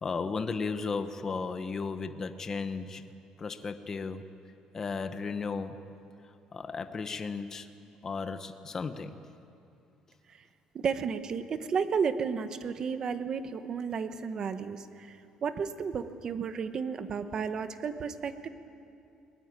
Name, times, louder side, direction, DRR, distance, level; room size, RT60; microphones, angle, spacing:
voice 1, 0.0-3.1 3.4-4.3 4.7-5.8 6.5-7.7 8.0-9.2, left 4 dB, 25° left, 9 dB, 0.9 m, -35 dB
voice 2, 10.7-18.5, right 6 dB, 35° right, 10 dB, 1.1 m, -33 dB
22.0 x 20.0 x 9.7 m, 2.7 s
cardioid pair, 170°, 2 cm